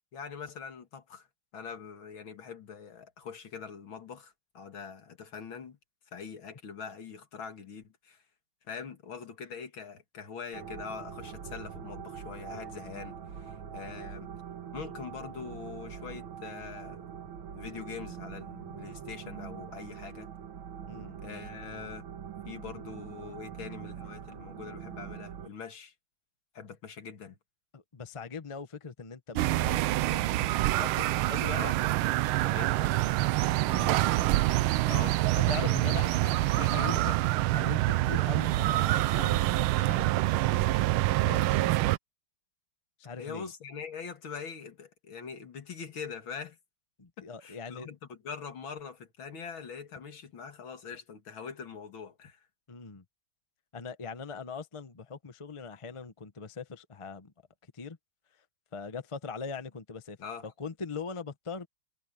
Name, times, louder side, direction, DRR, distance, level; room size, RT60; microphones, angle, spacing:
voice 1, 0.1-1.3 1.5-5.8 6.1-8.2 8.7-14.3 14.7-17.0 17.5-20.3 21.2-22.1 22.4-25.9 26.5-27.4 31.5-31.8 32.4-32.9 34.8-35.3 35.6-37.2 43.2-46.6 47.2-52.4 60.2-60.5, left 6 dB, 70° left, 2.9 m, -43 dB
sound 1, 10.5-25.5, right 8 dB, 75° right, 2.2 m, -43 dB
voice 2, 20.9-21.5 27.7-29.8 30.1-30.5 30.8-31.7 33.6-34.0 35.3-36.1 36.3-37.0 37.5-40.6 41.2-41.7 43.0-43.5 47.0-47.9 52.7-53.0 53.7-57.3 57.7-58.0 58.7-60.2 60.4-61.7, left 5 dB, 25° left, 0.6 m, -41 dB
sound 2, 29.3-42.0, right 17 dB, 90° right, 1.5 m, -26 dB
omnidirectional pair, 2.3 m